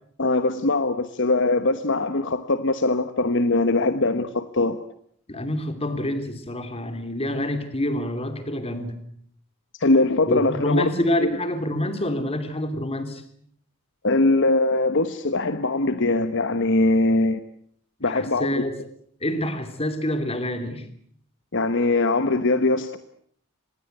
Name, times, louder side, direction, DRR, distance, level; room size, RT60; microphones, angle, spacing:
voice 1, 0.2-4.8 9.8-10.9 11.2-11.3 14.0-17.4 18.0-18.7 21.5-23.0, left 2 dB, 60° left, 11 dB, 1.1 m, -21 dB
voice 2, 5.3-9.0 10.3-13.2 18.1-18.8 19.2-20.8, left 1 dB, 25° left, 9 dB, 3.0 m, -27 dB
26.0 x 20.0 x 8.0 m, 0.64 s
head